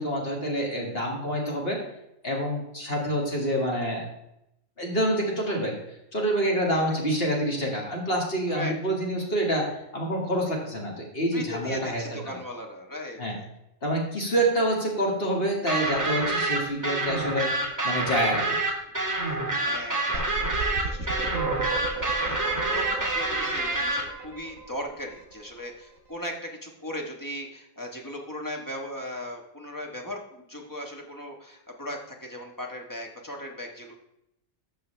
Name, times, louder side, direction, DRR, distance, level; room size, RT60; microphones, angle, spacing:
voice 1, 0.0-1.8 2.2-4.1 4.8-5.7 6.1-9.7 9.9-12.3 13.2-13.3 13.8-18.6, right 1 dB, 45° left, -1 dB, 2.2 m, -27 dB
voice 2, 11.3-13.5 19.1-34.0, equal, 15° left, 1 dB, 1.2 m, -38 dB
sound 1, 15.7-24.0, right 2 dB, 15° right, 1.9 m, -27 dB
sound 2, 20.1-25.0, right 5 dB, 80° right, 1.6 m, -34 dB
12.5 x 6.6 x 3.3 m, 0.83 s
omnidirectional pair, 1.4 m